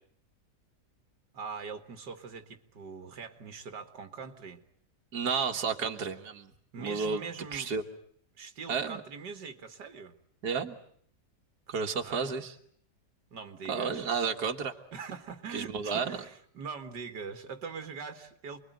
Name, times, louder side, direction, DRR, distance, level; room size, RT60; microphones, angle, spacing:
voice 1, 1.3-4.6 6.7-7.7 8.4-10.1 11.7-12.4 13.3-14.1 14.9-18.6, right 5 dB, 85° right, 2.3 m, -42 dB
voice 2, 5.1-6.5 6.8-7.2 7.5-7.8 8.7-9.0 10.4-10.8 11.7-12.5 13.7-14.7 15.5-16.2, right 5 dB, 70° right, 2.2 m, -31 dB
29.0 x 22.0 x 9.2 m
omnidirectional pair, 1.8 m